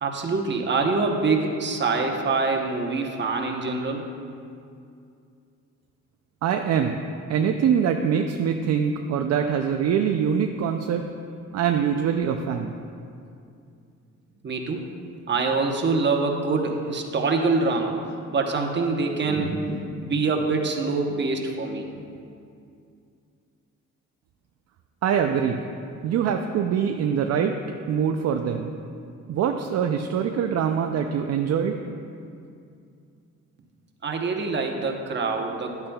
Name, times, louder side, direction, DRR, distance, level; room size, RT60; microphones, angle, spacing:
voice 1, 0.0-4.1 14.4-14.8 15.3-18.0 18.3-21.9 34.0-35.9, right 3 dB, 35° right, 2 dB, 1.0 m, -25 dB
voice 2, 6.4-7.0 7.3-11.1 11.5-12.7 25.0-25.6 26.0-27.6 27.9-28.7 29.3-31.8, right 7 dB, 60° right, 5 dB, 0.5 m, -24 dB
10.5 x 8.7 x 2.3 m, 2.5 s
cardioid pair, 90°, 30 cm